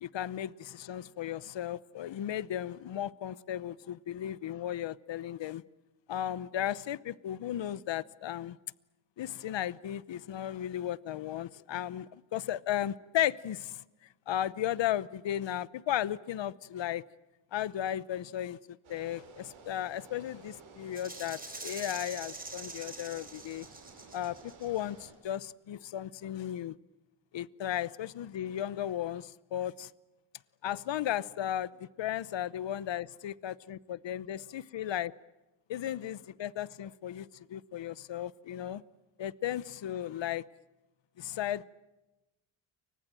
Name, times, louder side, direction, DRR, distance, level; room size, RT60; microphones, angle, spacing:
voice 1, 0.0-5.6 6.1-8.6 9.2-13.8 14.3-17.0 17.5-23.7 24.1-26.8 27.3-29.9 30.6-35.1 35.7-38.8 39.2-40.4 41.2-41.7, left 11 dB, 65° left, 0.9 m, -35 dB
sound 1, 18.8-25.1, right 4 dB, 85° right, 6.8 m, -54 dB
Rattle (instrument), 20.9-24.8, right 2 dB, 20° right, 5.1 m, -45 dB
29.5 x 24.5 x 7.6 m
wide cardioid pair, 130°, 47 cm